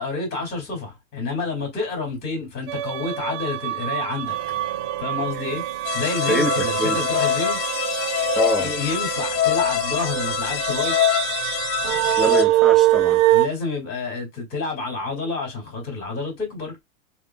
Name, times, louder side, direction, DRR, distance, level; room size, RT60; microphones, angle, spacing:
voice 1, 0.0-4.4 5.0-5.6 5.9-7.6 8.6-11.0 13.3-16.8, left 3 dB, 25° left, 2.1 m, -29 dB
sound 1, 2.7-13.5, right 15 dB, 50° right, 0.5 m, -24 dB
sound 2, 5.8-12.4, left 11 dB, 60° left, 0.5 m, -25 dB
voice 2, 6.3-7.0 8.3-8.7 12.2-13.2, equal, ahead, 1.0 m, -25 dB
3.5 x 2.5 x 2.2 m
hypercardioid pair, 130°, 40 cm